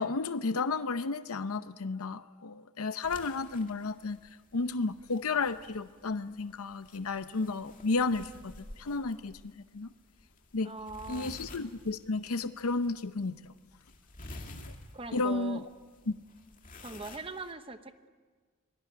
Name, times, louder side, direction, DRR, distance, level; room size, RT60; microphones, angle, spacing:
voice 1, 0.0-4.2 4.5-9.9 10.5-10.7 11.1-13.5 14.5-14.7 15.1-15.6 16.1-16.2, left 3 dB, 75° left, 11 dB, 0.7 m, -32 dB
sound 1, 3.0-17.5, left 2 dB, 35° left, 2.2 m, -51 dB
voice 2, 10.6-11.4 14.9-15.6 16.8-18.1, right 3 dB, 25° right, 9 dB, 1.0 m, -41 dB
24.0 x 18.5 x 9.3 m, 1.5 s
head